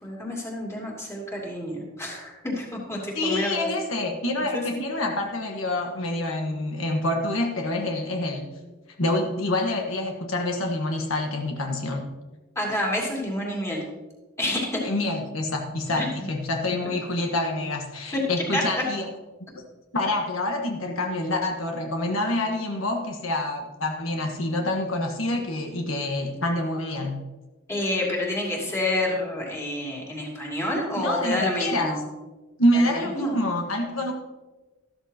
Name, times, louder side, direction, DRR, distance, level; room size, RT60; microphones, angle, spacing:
voice 1, 0.0-3.7 4.5-4.6 12.6-13.8 14.4-14.8 16.0-16.1 18.1-18.2 18.5-18.8 27.7-32.0 32.7-33.3, left 1 dB, 15° left, -3 dB, 2.6 m, -28 dB
voice 2, 3.1-8.5 9.0-12.1 14.8-19.1 19.9-27.2 30.9-32.0 32.6-34.1, left 1 dB, 75° left, 1 dB, 1.4 m, -27 dB
13.5 x 13.0 x 2.9 m, 1.2 s
head